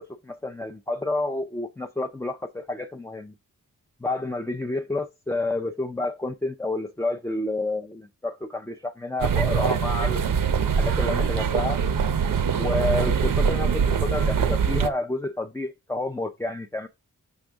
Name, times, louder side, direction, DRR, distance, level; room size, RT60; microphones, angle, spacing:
voice 1, 0.0-3.3 4.0-10.2 10.7-11.8 12.5-16.9, left 2 dB, 10° left, 0.4 m, -29 dB
sound 1, 9.2-14.9, right 6 dB, 75° right, 0.7 m, -23 dB
6.4 x 6.1 x 3.5 m
wide cardioid pair, 130°, 33 cm